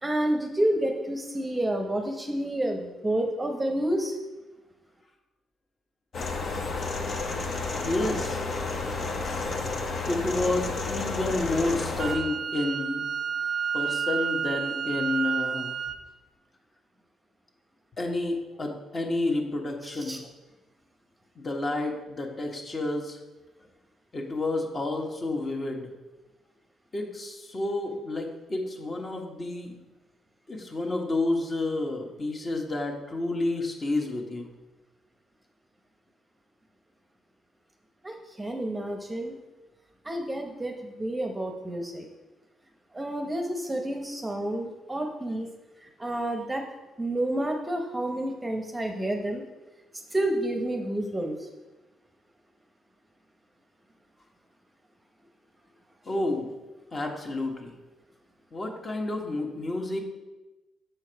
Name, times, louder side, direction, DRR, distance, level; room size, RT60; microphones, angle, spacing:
voice 1, 0.0-4.2 20.0-20.2 38.0-39.3 40.0-42.0 42.9-45.5 45.8-46.6 47.0-49.4 50.1-51.5, right 1 dB, 15° right, 3 dB, 0.8 m, -29 dB
sound 1, 6.1-12.2, left 3 dB, 55° left, 1.0 m, -31 dB
voice 2, 7.8-8.4 10.1-13.0 13.7-15.7 18.0-20.2 21.3-23.2 24.1-25.9 26.9-29.8 30.5-34.5 56.0-56.5 56.9-57.7 58.5-60.0, left 2 dB, 35° left, 2 dB, 1.2 m, -30 dB
Wind instrument woodwind instrument, 12.0-16.0, right 7 dB, 55° right, 0.4 m, -30 dB
6.7 x 4.6 x 4.5 m, 1.1 s
cardioid pair, 90°, 0 cm